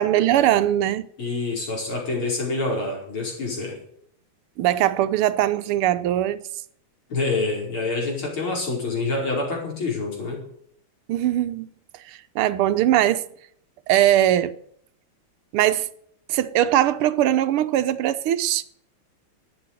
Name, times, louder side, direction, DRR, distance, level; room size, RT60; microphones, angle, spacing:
voice 1, 0.0-1.1 4.6-6.4 11.1-11.7 12.1-13.2 13.9-14.6 15.5-15.9 16.3-18.6, right 12 dB, 85° right, 1.7 m, -21 dB
voice 2, 1.2-3.8 7.1-10.4, left 3 dB, 70° left, 5.8 m, -27 dB
12.0 x 9.4 x 9.1 m
omnidirectional pair, 2.3 m